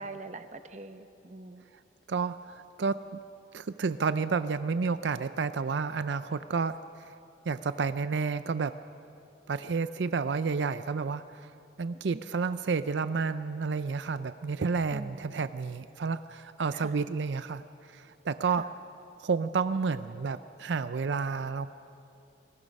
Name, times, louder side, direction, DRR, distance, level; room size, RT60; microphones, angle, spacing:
voice 1, 0.0-1.6 12.1-12.3 14.9-15.5 16.7-17.0 18.5-18.7, right 2 dB, 40° right, 9 dB, 0.9 m, -44 dB
voice 2, 2.1-3.0 3.5-6.8 7.5-8.7 9.5-11.5 11.8-17.6 17.9-18.7 19.2-21.8, right 5 dB, 80° right, 12 dB, 0.5 m, -30 dB
29.0 x 20.5 x 5.4 m, 2.6 s
head